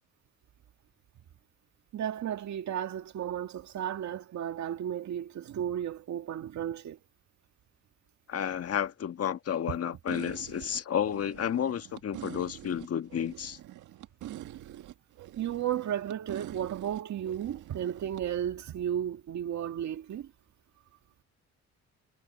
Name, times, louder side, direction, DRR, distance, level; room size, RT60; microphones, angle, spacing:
voice 1, 1.9-7.0 15.4-20.3, right 10 dB, 70° right, 2.1 m, -34 dB
voice 2, 8.3-13.6, left 9 dB, 50° left, 1.5 m, -31 dB
sound 1, 10.1-18.2, right 13 dB, 85° right, 1.8 m, -45 dB
cardioid pair, 90°, 30 cm